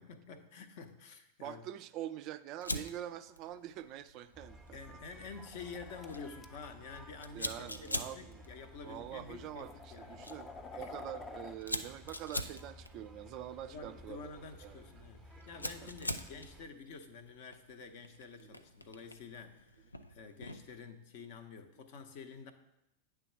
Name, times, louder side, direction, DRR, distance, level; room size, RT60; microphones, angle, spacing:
voice 1, 0.0-1.6 4.7-10.2 10.7-11.0 13.7-19.8 20.1-22.5, left 5 dB, 50° left, 8 dB, 0.7 m, -49 dB
voice 2, 1.4-5.0 7.3-8.4 8.8-14.3 14.6-14.8 15.5-16.1 18.4-18.6, right 11 dB, 40° right, 11 dB, 0.3 m, -45 dB
Fire, 2.6-20.8, left 1 dB, 85° left, 0.4 m, -46 dB
sound 1, 4.3-16.7, equal, 5° right, 0.9 m, -55 dB
sound 2, 5.4-6.5 7.6-7.7 8.6-8.7 9.3-11.6, left 3 dB, 20° left, 0.5 m, -49 dB
9.1 x 3.4 x 5.8 m, 0.87 s
figure-of-eight pair, 90°, 0 cm